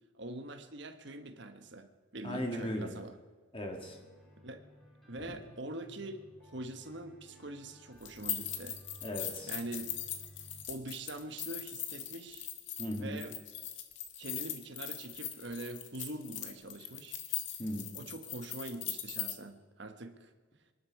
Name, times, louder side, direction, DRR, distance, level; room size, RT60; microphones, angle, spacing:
voice 1, 0.1-3.2 4.4-4.6 5.1-8.8 9.5-9.9 10.7-12.5 13.0-13.3 14.2-17.2 17.9-20.3, right 2 dB, 55° right, 8 dB, 1.3 m, -44 dB
voice 2, 2.2-2.9 3.5-4.0 9.0-9.5 12.8-13.2 17.6-17.9, equal, 25° left, 2 dB, 2.1 m, -37 dB
sound 1, 3.7-10.7, equal, ahead, 3.4 m, -57 dB
sound 2, 8.0-19.3, left 11 dB, 65° left, 1.6 m, -40 dB
26.0 x 11.0 x 4.8 m, 1.4 s
head